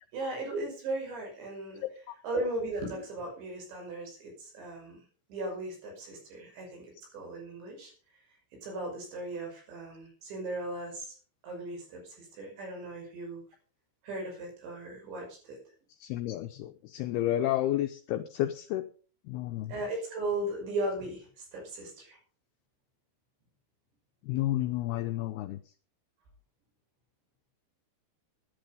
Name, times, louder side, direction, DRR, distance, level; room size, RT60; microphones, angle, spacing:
voice 1, 0.1-1.8 2.2-5.0 5.3-7.9 8.6-11.2 11.4-13.4 14.0-15.6 19.7-22.2, right 2 dB, 70° right, 1 dB, 7.9 m, -37 dB
voice 2, 16.0-18.9 19.3-19.7 24.2-25.6, left 13 dB, 90° left, 8 dB, 2.2 m, -31 dB
14.0 x 10.5 x 5.3 m, 0.40 s
omnidirectional pair, 5.4 m